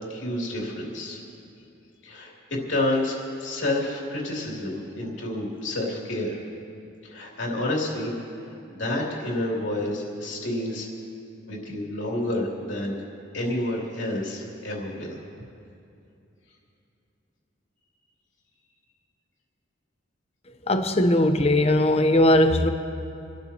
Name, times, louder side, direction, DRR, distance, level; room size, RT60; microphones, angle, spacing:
voice 1, 0.1-1.2 2.0-6.4 7.0-8.1 8.5-10.9 11.5-12.9 13.3-15.2, left 1 dB, 65° left, -2 dB, 3.0 m, -29 dB
voice 2, 20.7-22.7, left 1 dB, 30° left, 7 dB, 0.8 m, -19 dB
29.5 x 13.0 x 3.0 m, 2.7 s
head